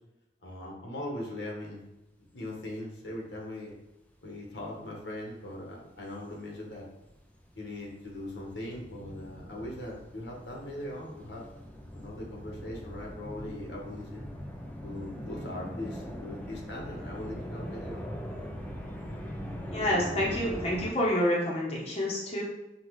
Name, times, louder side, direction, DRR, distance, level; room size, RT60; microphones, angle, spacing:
voice 1, 0.4-1.8 2.3-3.7 4.2-6.9 7.5-11.4 11.9-14.3 14.8-18.5, left 1 dB, 80° left, -1 dB, 1.1 m, -40 dB
sound 1, 4.3-4.6 5.2-20.9, equal, 10° left, 0.4 m, -41 dB
voice 2, 19.7-22.4, left 1 dB, 35° left, -4 dB, 0.8 m, -28 dB
5.6 x 2.3 x 3.0 m, 0.96 s
head